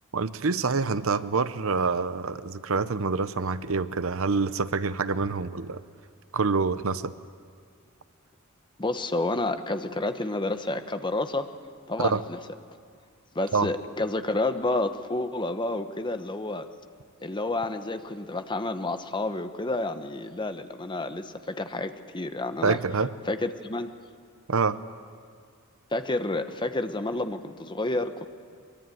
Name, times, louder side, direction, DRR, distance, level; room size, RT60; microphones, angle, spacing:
voice 1, 0.1-5.8 6.3-7.1 12.0-12.2 13.5-13.7 22.6-23.1 24.5-24.8, right 4 dB, 65° right, 13 dB, 0.8 m, -26 dB
voice 2, 8.8-11.5 11.9-12.4 13.3-16.7 17.2-22.8 23.3-23.9 25.9-28.3, left 2 dB, 20° left, 8 dB, 1.1 m, -30 dB
24.0 x 23.0 x 9.3 m, 2.1 s
head